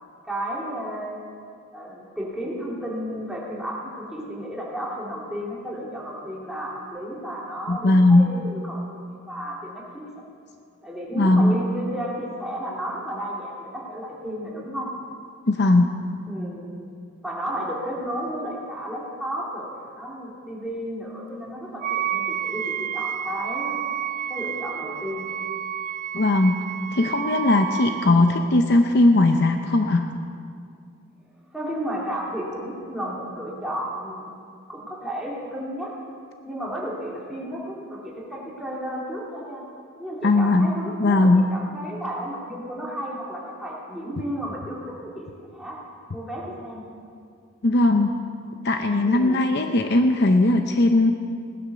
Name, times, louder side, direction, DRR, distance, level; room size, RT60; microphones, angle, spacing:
voice 1, 0.2-1.2 1.7-10.0 10.8-14.9 16.3-16.7 17.2-23.8 24.3-25.3 28.0-28.3 31.5-34.3 34.7-35.9 36.4-39.6 40.0-45.8 46.1-46.8 49.0-49.5, equal, ahead, -5 dB, 2.8 m, -33 dB
voice 2, 7.7-8.3 11.2-11.5 15.5-15.9 26.1-26.6 26.9-30.1 40.2-40.7 41.0-41.4 47.6-48.1 48.6-51.1, left 2 dB, 50° left, 6 dB, 0.7 m, -18 dB
Wind instrument woodwind instrument, 21.8-28.1, right 10 dB, 40° right, 0.3 m, -30 dB
17.5 x 10.0 x 6.7 m, 2.3 s
head